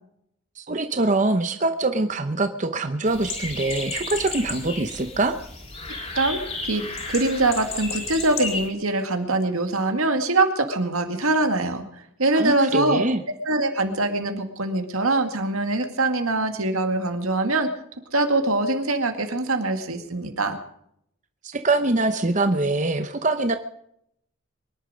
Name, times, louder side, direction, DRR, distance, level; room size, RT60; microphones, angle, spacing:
voice 1, 0.6-5.4 12.3-13.2 21.4-23.6, right 2 dB, 35° right, 8 dB, 0.8 m, -24 dB
sound 1, 3.1-8.7, left 3 dB, 30° left, 3.6 m, -33 dB
voice 2, 6.1-11.8 12.2-13.0 13.5-17.7 18.1-20.6, right 2 dB, 90° right, 6 dB, 2.2 m, -23 dB
24.0 x 11.0 x 5.1 m, 0.73 s
head